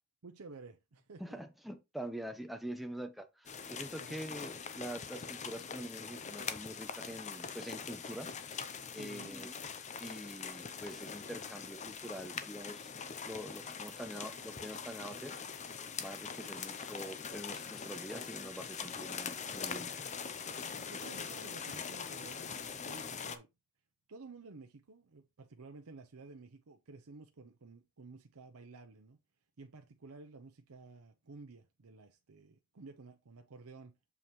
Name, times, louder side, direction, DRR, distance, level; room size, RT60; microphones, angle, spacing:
voice 1, 0.2-1.4 4.0-4.2 8.9-9.4 20.6-23.5 24.1-29.2 29.6-33.9, right 3 dB, 85° right, 0.7 m, -53 dB
voice 2, 1.2-8.3 8.9-9.5 10.0-12.9 13.2-15.4 16.0-19.9, equal, ahead, 0.9 m, -45 dB
sound 1, 3.5-23.4, left 6 dB, 35° left, 0.6 m, -43 dB
7.1 x 5.6 x 3.1 m
head